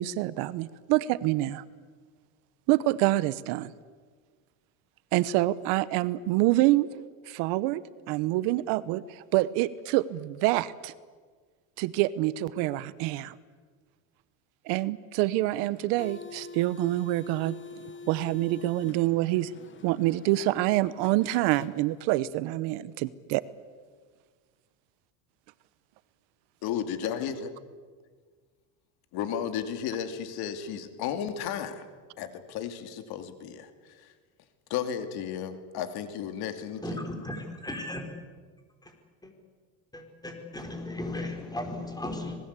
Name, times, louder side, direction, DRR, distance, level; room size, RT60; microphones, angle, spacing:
voice 1, 0.0-1.6 2.7-3.7 5.1-6.9 7.3-10.9 11.8-13.3 14.7-19.5 19.8-23.4, right 16 dB, 75° right, 17 dB, 1.0 m, -26 dB
sound 1, 15.7-22.2, left 4 dB, 25° left, 1.5 m, -46 dB
voice 2, 26.6-27.5 29.1-31.9 32.2-34.1 34.7-37.0, left 8 dB, 60° left, 8 dB, 2.8 m, -34 dB
voice 3, 36.8-38.0 38.8-38.9 39.2-39.3 39.9-42.4, left 1 dB, 10° left, 4 dB, 4.7 m, -36 dB
26.5 x 20.5 x 8.3 m, 1.6 s
cardioid pair, 125°, 42 cm